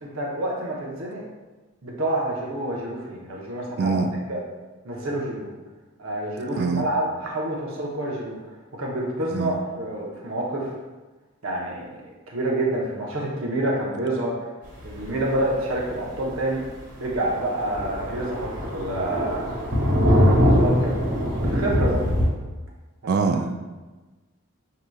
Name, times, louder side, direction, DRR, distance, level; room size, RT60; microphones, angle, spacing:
voice 1, 0.0-1.2 1.8-4.0 4.3-4.4 4.8-5.5 6.0-8.4 8.7-10.7 11.4-11.9 12.3-14.4 14.8-16.6 17.0-19.5 20.2-21.0 21.4-22.0, right 1 dB, 65° right, -2 dB, 0.8 m, -28 dB
voice 2, 3.8-4.1 6.6-6.8 9.3-9.5 21.9-22.0 23.1-23.5, right 4 dB, 45° right, 6 dB, 0.3 m, -24 dB
Thunder, 15.3-15.5 15.9-16.0 16.3-16.4 16.7-16.8 17.1-22.3, equal, 80° right, 1.4 m, -22 dB
6.1 x 2.8 x 2.3 m, 1.2 s
head